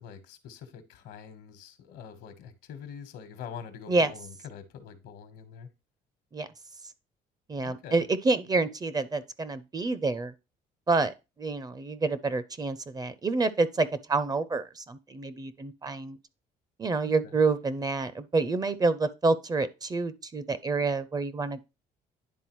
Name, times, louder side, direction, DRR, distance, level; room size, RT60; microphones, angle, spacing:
voice 1, 0.0-5.7 7.6-8.0 17.0-17.3, left 7 dB, 80° left, 1.2 m, -45 dB
voice 2, 7.5-10.3 10.9-16.2 16.8-21.6, right 3 dB, 25° right, 0.5 m, -28 dB
10.5 x 3.7 x 3.0 m
cardioid pair, 110°, 17 cm